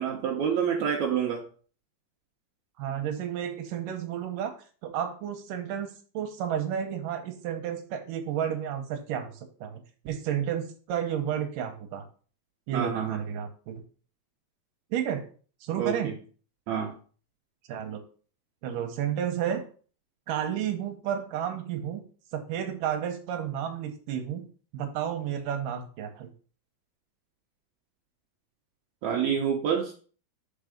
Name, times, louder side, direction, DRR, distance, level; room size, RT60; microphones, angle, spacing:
voice 1, 0.0-1.4 12.7-13.2 15.8-16.1 16.7-16.9 29.0-29.9, right 7 dB, 90° right, 0 dB, 1.6 m, -27 dB
voice 2, 2.8-4.6 4.8-12.0 12.7-13.8 14.9-15.3 15.6-16.1 17.7-18.0 18.6-19.6 20.3-22.0 22.3-24.5 24.7-26.3, right 9 dB, 75° right, 6 dB, 2.1 m, -32 dB
5.6 x 4.7 x 5.0 m, 0.41 s
omnidirectional pair, 4.5 m